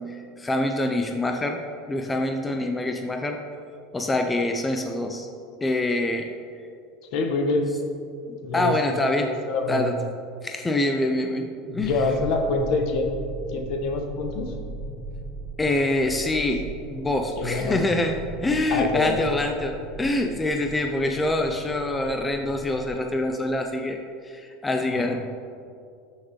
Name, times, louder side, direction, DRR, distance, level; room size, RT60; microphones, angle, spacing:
voice 1, 0.0-1.6 1.9-3.4 3.9-5.3 5.6-6.3 8.3-9.3 9.7-10.0 10.4-12.0 15.6-25.2, left 1 dB, 15° left, 4 dB, 0.6 m, -25 dB
voice 2, 7.1-7.7 8.4-9.9 11.7-14.5 17.3-17.8 18.7-19.3 24.8-25.2, left 3 dB, 60° left, 4 dB, 1.2 m, -26 dB
sound 1, 11.8-22.9, right 3 dB, 25° right, 1.5 m, -38 dB
13.5 x 6.3 x 3.2 m, 2.4 s
supercardioid pair, 115°, 0 cm